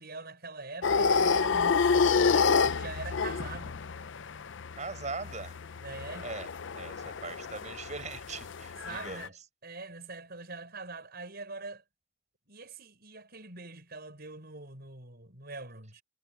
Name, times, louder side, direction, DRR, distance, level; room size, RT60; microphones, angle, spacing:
voice 1, 0.0-3.8 5.8-6.3 8.8-9.3 9.6-11.8 12.5-16.0, right 3 dB, 55° right, 6.3 m, -43 dB
sound 1, 0.8-9.3, left 5 dB, 65° left, 0.6 m, -29 dB
voice 2, 4.8-5.6 6.2-6.5 6.8-9.3, right 4 dB, 40° right, 7.7 m, -40 dB
head